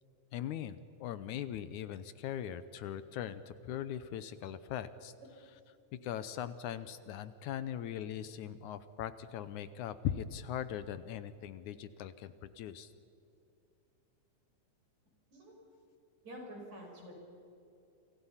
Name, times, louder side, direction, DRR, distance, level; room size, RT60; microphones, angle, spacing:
voice 1, 0.3-5.1 6.0-12.9, left 10 dB, 75° left, 13 dB, 2.1 m, -40 dB
voice 2, 16.2-17.2, equal, 60° right, 0 dB, 7.3 m, -48 dB
29.0 x 26.5 x 5.7 m, 2.7 s
omnidirectional pair, 3.7 m